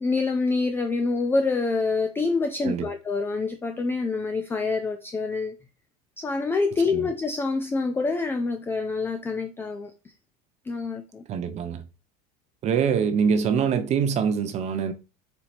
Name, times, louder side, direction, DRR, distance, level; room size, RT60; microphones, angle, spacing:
voice 1, 0.0-5.5 6.2-9.9 10.7-11.2, left 3 dB, 10° left, 0.4 m, -26 dB
voice 2, 11.3-11.8 12.6-14.9, right 7 dB, 35° right, 0.6 m, -24 dB
4.4 x 2.7 x 4.2 m
supercardioid pair, 140°, 20 cm